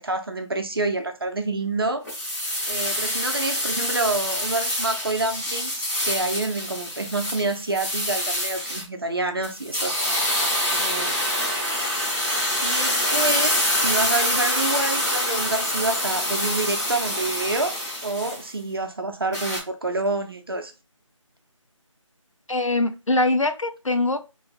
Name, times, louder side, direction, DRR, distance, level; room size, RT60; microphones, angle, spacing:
voice 1, 0.0-2.1 2.7-11.2 12.6-20.7, right 2 dB, 45° right, 0.7 m, -28 dB
sound 1, 2.0-8.8 9.4-18.5 19.3-19.6, left 1 dB, 30° left, 2.3 m, -26 dB
voice 2, 22.5-24.2, left 2 dB, 70° left, 0.7 m, -22 dB
4.1 x 3.2 x 2.4 m
figure-of-eight pair, 165°, 17 cm